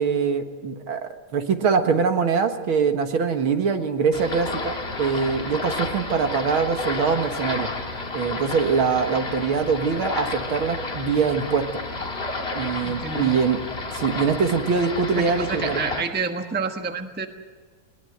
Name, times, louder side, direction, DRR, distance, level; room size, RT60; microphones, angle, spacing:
voice 1, 0.0-7.7 8.1-11.8 12.5-13.6 13.9-15.8, right 5 dB, 75° right, 6 dB, 2.3 m, -23 dB
sound 1, 4.1-16.0, left 3 dB, 30° left, 2.2 m, -31 dB
voice 2, 12.8-13.3 15.1-17.3, right 5 dB, 5° right, 6 dB, 0.9 m, -29 dB
21.0 x 20.0 x 7.9 m, 1.5 s
omnidirectional pair, 2.3 m